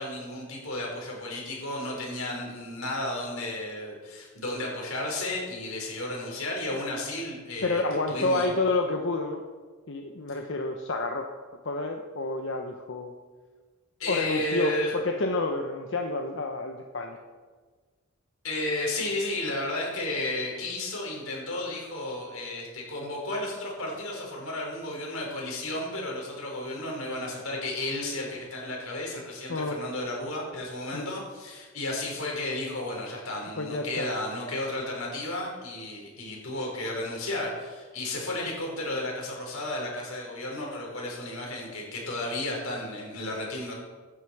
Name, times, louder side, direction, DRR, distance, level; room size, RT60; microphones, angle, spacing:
voice 1, 0.0-7.8 8.1-8.5 14.0-14.9 18.4-43.7, left 1 dB, 90° left, -2 dB, 5.3 m, -33 dB
voice 2, 7.6-9.4 9.9-11.3 11.6-13.1 14.1-17.2 29.5-29.8 30.9-31.1 33.6-34.1, left 2 dB, 60° left, 3 dB, 1.0 m, -29 dB
17.0 x 11.0 x 4.9 m, 1.4 s
head